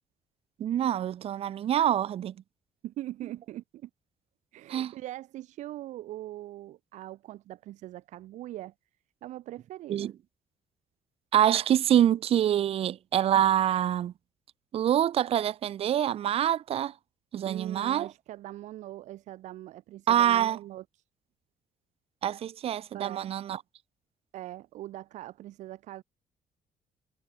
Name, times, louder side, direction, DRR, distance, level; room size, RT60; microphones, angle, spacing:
voice 1, 0.6-2.3 4.7-4.9 9.9-10.1 11.3-14.1 14.7-16.9 17.3-18.1 20.1-20.6 22.2-23.6, right 10 dB, 50° right, 0.8 m, -25 dB
voice 2, 2.8-3.9 4.5-8.7 9.2-10.1 17.4-21.0 22.9-23.3 24.3-26.0, right 14 dB, 75° right, 1.3 m, -41 dB
cardioid pair, 115°, 13 cm